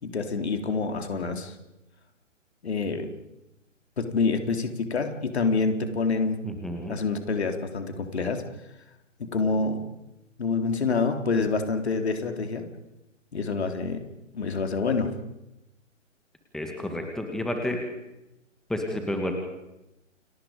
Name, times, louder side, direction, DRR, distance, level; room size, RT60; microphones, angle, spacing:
voice 1, 0.0-1.5 2.6-3.1 4.0-6.4 6.9-8.4 9.3-9.8 10.4-12.6 13.3-14.0 14.3-15.1, left 4 dB, 55° left, 5 dB, 3.7 m, -27 dB
voice 2, 6.4-6.9 16.5-17.8 18.7-19.3, left 1 dB, ahead, 3 dB, 2.1 m, -30 dB
30.0 x 27.0 x 5.3 m, 0.93 s
figure-of-eight pair, 130°, 39 cm